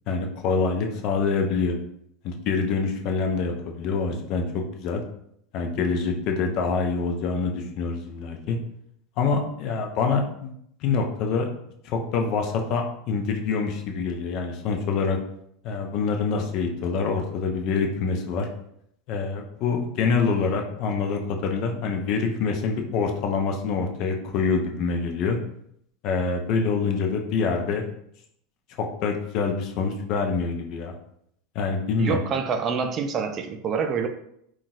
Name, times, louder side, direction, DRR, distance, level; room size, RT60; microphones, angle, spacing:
voice 1, 0.1-1.8 2.2-4.4 4.8-5.0 5.5-8.6 9.2-10.5 10.8-11.5 11.8-15.2 15.6-18.5 19.1-25.4 26.0-27.8 28.8-30.9 31.5-32.2, left 5 dB, 55° left, 4 dB, 0.5 m, -25 dB
voice 2, 32.0-34.1, right 6 dB, 40° right, 6 dB, 0.4 m, -26 dB
3.8 x 2.3 x 2.4 m, 0.71 s
hypercardioid pair, 90°, 0 cm